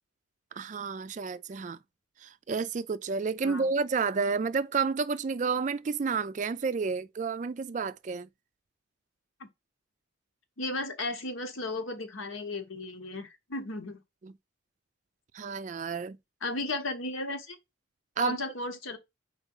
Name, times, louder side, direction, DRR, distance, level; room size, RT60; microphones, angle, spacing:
voice 1, 0.6-1.8 2.2-8.3 14.2-14.3 15.3-16.2 18.2-18.4, right 5 dB, 35° right, 0.3 m, -30 dB
voice 2, 10.6-14.0 16.4-17.6 18.2-19.0, left 2 dB, 85° left, 1.2 m, -35 dB
4.5 x 4.0 x 5.4 m
head